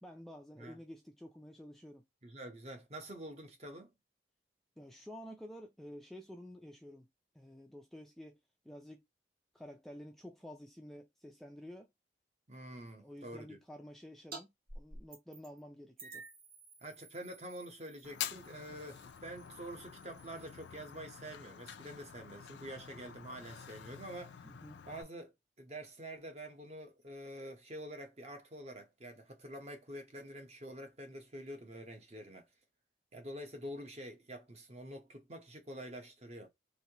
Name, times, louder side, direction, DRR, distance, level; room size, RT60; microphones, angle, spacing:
voice 1, 0.0-2.1 4.8-7.1 7.3-9.1 9.5-11.9 12.9-16.3 24.4-24.9, equal, ahead, 0.3 m, -51 dB
voice 2, 2.2-3.9 12.5-13.6 16.8-24.4 24.9-25.3 25.6-32.4 33.1-36.5, right 1 dB, 35° right, 0.8 m, -47 dB
sound 1, 14.3-14.4 14.7-15.6 16.0-21.1, right 3 dB, 55° right, 1.4 m, -53 dB
Fire, 18.0-25.0, left 9 dB, 85° left, 0.4 m, -47 dB
3.2 x 2.5 x 2.8 m
head